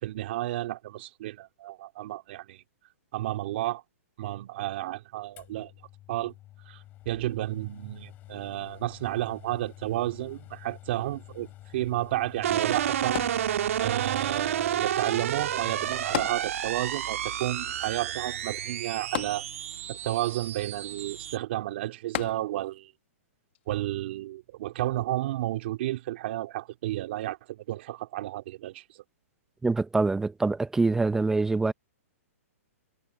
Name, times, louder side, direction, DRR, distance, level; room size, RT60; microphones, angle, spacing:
voice 1, 0.0-2.6 3.1-3.8 4.2-5.7 6.1-6.3 6.7-6.8 7.1-11.5 11.7-13.2 13.8-19.5 19.9-22.9 23.7-28.8, right 15 dB, 45° right, 3.4 m, -32 dB
sound 1, 5.4-16.2, left 15 dB, 20° left, 7.4 m, -49 dB
sound 2, 12.4-21.4, right 10 dB, 65° right, 2.2 m, -30 dB
sound 3, 13.2-14.1 16.1-17.0 17.3-17.4 19.2-20.0 22.1-22.9 23.6-23.7, left 15 dB, 45° left, 1.1 m, -35 dB
voice 2, 29.6-31.7, right 3 dB, 5° right, 0.8 m, -25 dB
hypercardioid pair, 160°, 8 cm